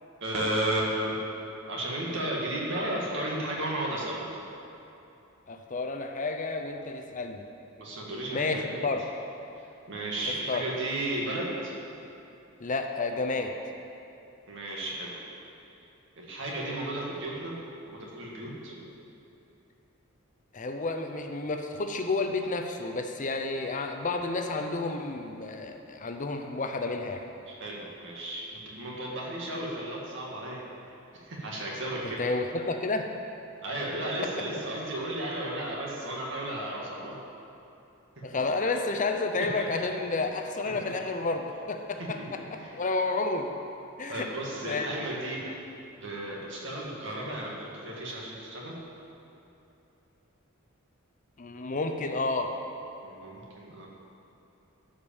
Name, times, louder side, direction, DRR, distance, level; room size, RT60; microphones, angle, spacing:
voice 1, 0.2-1.2 1.7-4.2 7.8-8.8 9.9-11.7 14.5-15.2 16.2-17.6 17.9-18.8 27.5-30.6 31.2-32.2 33.6-37.2 39.6-39.7 40.7-40.8 42.0-42.3 42.5-42.7 44.1-45.4 46.0-48.8 53.0-53.9, right 1 dB, 60° right, -3 dB, 2.2 m, -34 dB
voice 2, 5.5-7.4 8.3-9.0 10.5-10.6 12.6-13.5 20.5-27.2 32.2-33.1 38.2-42.2 42.5-43.5 44.0-44.3 44.6-44.9 51.4-52.5, left 3 dB, 40° left, 5 dB, 0.7 m, -30 dB
13.0 x 5.2 x 7.2 m, 2.8 s
head